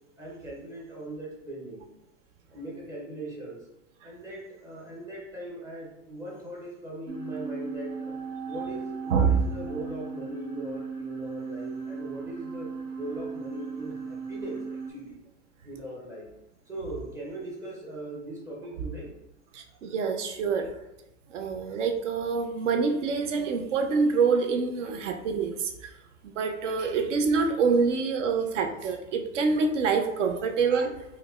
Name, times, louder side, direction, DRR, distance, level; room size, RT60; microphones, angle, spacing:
voice 1, 0.2-1.8 2.5-3.6 4.0-8.2 8.5-15.2 15.6-16.3 16.7-19.1, right 1 dB, 10° right, -3 dB, 0.5 m, -40 dB
sound 1, 7.1-14.9, right 5 dB, 90° right, 1.0 m, -37 dB
voice 2, 19.8-20.7 21.3-25.5 26.4-30.9, right 5 dB, 70° right, 5 dB, 0.7 m, -26 dB
4.5 x 2.2 x 2.4 m, 0.90 s
hypercardioid pair, 140°, 38 cm